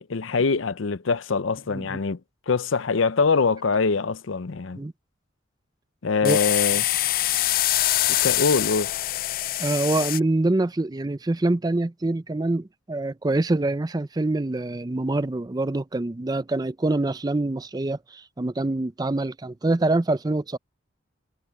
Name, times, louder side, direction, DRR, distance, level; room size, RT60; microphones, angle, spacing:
voice 1, 0.0-2.2 2.5-4.8 6.0-6.8 8.1-8.9, left 4 dB, 85° left, 0.6 m, -23 dB
sound 1, 6.2-10.2, left 15 dB, 50° left, 0.4 m, -24 dB
voice 2, 9.6-20.6, right 2 dB, 20° right, 0.5 m, -25 dB
head